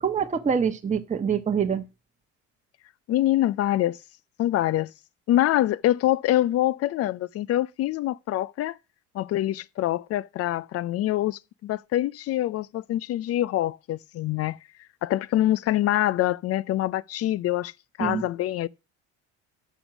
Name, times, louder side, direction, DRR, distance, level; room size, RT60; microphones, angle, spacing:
voice 1, 0.0-1.8 18.0-18.2, right 7 dB, 20° right, 1.2 m, -25 dB
voice 2, 3.1-4.0 4.4-4.9 5.3-8.8 9.1-14.6 15.0-17.7 18.0-18.7, left 14 dB, 40° left, 0.5 m, -25 dB
9.1 x 7.0 x 6.0 m
supercardioid pair, 100°, 36 cm